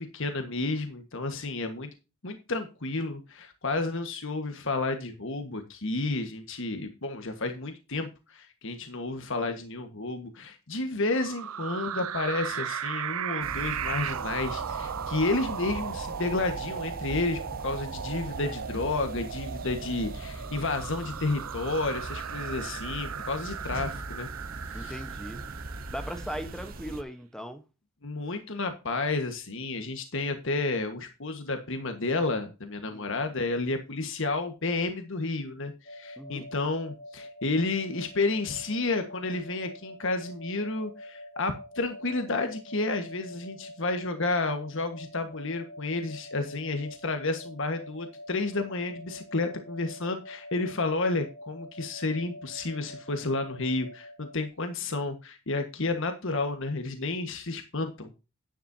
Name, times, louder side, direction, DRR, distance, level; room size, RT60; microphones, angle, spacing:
voice 1, 0.1-1.9 2.2-24.3 24.6-25.0 28.0-58.1, left 3 dB, 60° left, 1.5 m, -31 dB
sound 1, 11.1-26.8, right 8 dB, 80° right, 0.5 m, -36 dB
sound 2, 13.4-27.0, right 1 dB, 45° right, 1.0 m, -41 dB
voice 2, 24.7-25.4 25.9-27.6 32.9-33.1 36.2-36.5, equal, 5° left, 1.1 m, -38 dB
sound 3, 35.8-54.5, left 1 dB, 40° left, 1.5 m, -46 dB
10.5 x 10.5 x 2.8 m
head